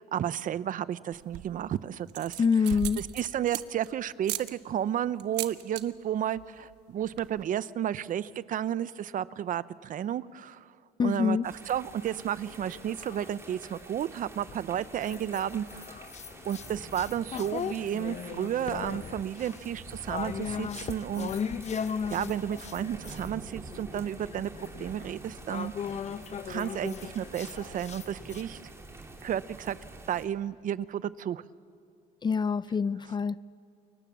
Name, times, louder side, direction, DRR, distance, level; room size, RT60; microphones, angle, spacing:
voice 1, 0.0-10.7 11.0-15.9 16.5-21.4 22.1-25.7 26.5-28.6 29.2-29.8 30.1-31.4, right 10 dB, 50° right, 16 dB, 0.7 m, -32 dB
sound 1, 1.1-1.6 2.1-3.9 4.2-4.5 5.2-5.8 6.1-6.4 6.7-6.8 7.0-7.4, right 14 dB, 85° right, 1.1 m, -37 dB
voice 2, 2.4-3.0 11.0-11.5 32.2-33.4, left 5 dB, 25° left, 17 dB, 0.5 m, -25 dB
sound 2, 11.4-30.3, right 2 dB, 15° right, 2.9 m, -47 dB
sound 3, 12.5-13.8 14.4-23.3 23.7-28.4, left 7 dB, 40° left, 0.9 m, -38 dB
29.0 x 23.5 x 7.4 m, 2.5 s
cardioid pair, 110°, 17 cm